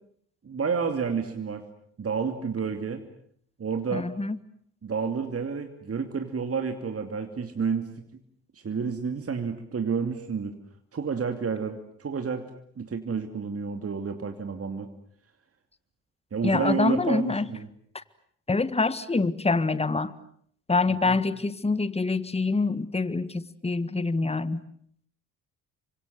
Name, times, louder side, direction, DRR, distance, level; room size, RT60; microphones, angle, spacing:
voice 1, 0.4-1.6 2.0-3.0 3.6-4.1 4.8-7.9 8.5-10.5 10.9-12.5 12.8-14.9 16.3-17.7 21.0-21.2, right 5 dB, 35° right, 6 dB, 2.7 m, -30 dB
voice 2, 3.9-4.4 16.4-17.5 17.9-18.0 18.5-20.1 20.7-24.6, left 3 dB, 15° left, 15 dB, 1.7 m, -25 dB
29.5 x 25.0 x 7.8 m, 0.64 s
hypercardioid pair, 50°, 40 cm